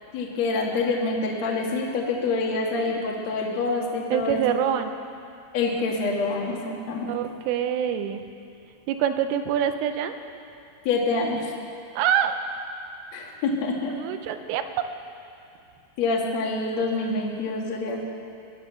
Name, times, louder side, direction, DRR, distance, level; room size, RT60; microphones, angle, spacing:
voice 1, 0.1-4.6 5.5-7.2 10.8-11.5 13.1-13.9 16.0-18.0, left 3 dB, 60° left, -2 dB, 1.8 m, -26 dB
voice 2, 4.1-4.9 7.1-8.2 8.9-10.1 12.0-12.3 13.9-14.9, right 9 dB, 80° right, 8 dB, 3.2 m, -25 dB
20.0 x 11.0 x 6.8 m, 2.5 s
omnidirectional pair, 5.9 m